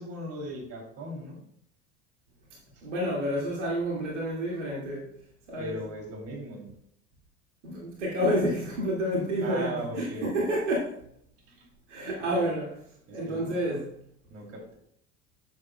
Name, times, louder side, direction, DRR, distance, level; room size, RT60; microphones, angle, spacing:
voice 1, 0.0-1.4 5.6-6.7 9.4-10.3 11.5-11.6 12.3-12.5 13.1-13.6 14.3-14.8, right 1 dB, 40° right, 1 dB, 3.0 m, -38 dB
voice 2, 2.8-5.1 5.5-5.8 7.6-10.9 11.9-12.7 13.1-13.9, equal, 70° right, -3 dB, 2.2 m, -29 dB
12.0 x 7.5 x 2.3 m, 0.67 s
figure-of-eight pair, 70°, 37 cm